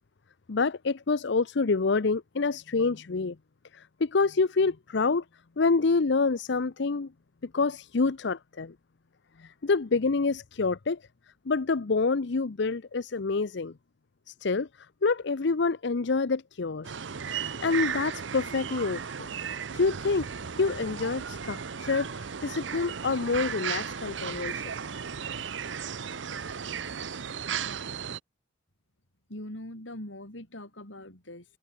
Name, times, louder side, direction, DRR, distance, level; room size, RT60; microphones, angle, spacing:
voice 1, 0.5-3.4 3.7-5.2 5.6-7.1 7.5-8.7 9.4-11.0 11.5-13.7 14.3-14.7 15.0-16.9 17.4-19.3 19.7-20.3 20.6-24.6, left 4 dB, 65° left, 0.7 m, -27 dB
sound 1, 16.8-28.2, right 7 dB, 70° right, 0.8 m, -35 dB
voice 2, 29.3-31.4, left 1 dB, 85° left, 6.4 m, -42 dB
head